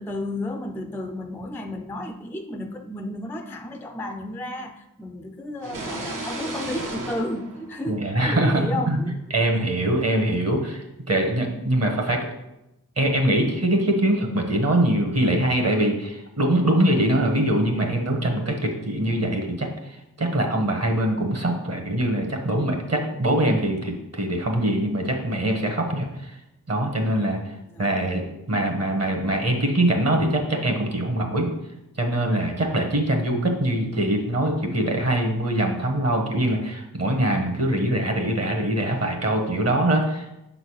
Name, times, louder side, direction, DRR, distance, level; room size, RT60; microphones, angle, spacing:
voice 1, 0.0-9.1 27.5-28.0, left 1 dB, 5° left, 6 dB, 0.4 m, -32 dB
sound 1, 5.6-8.4, right 2 dB, 65° right, 1.2 m, -34 dB
voice 2, 7.9-9.0 9.3-12.3 13.0-26.4 26.7-31.5 32.0-40.3, right 1 dB, 45° right, 3 dB, 1.4 m, -23 dB
6.2 x 3.9 x 6.3 m, 0.89 s
wide cardioid pair, 110°, 34 cm